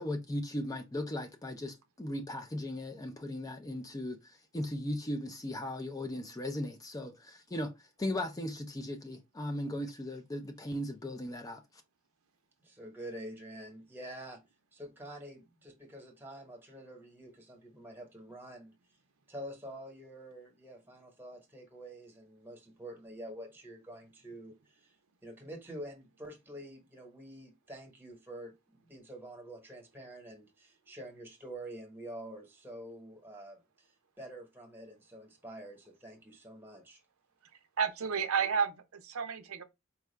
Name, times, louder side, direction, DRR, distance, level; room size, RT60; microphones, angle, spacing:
voice 1, 0.0-11.6, left 1 dB, 15° left, 0.5 m, -37 dB
voice 2, 12.6-14.4 14.7-18.7 19.3-24.9 25.2-33.9 34.2-37.0, right 1 dB, 10° right, 1.1 m, -47 dB
voice 3, 37.8-39.6, right 6 dB, 80° right, 0.6 m, -31 dB
4.5 x 2.4 x 3.2 m
head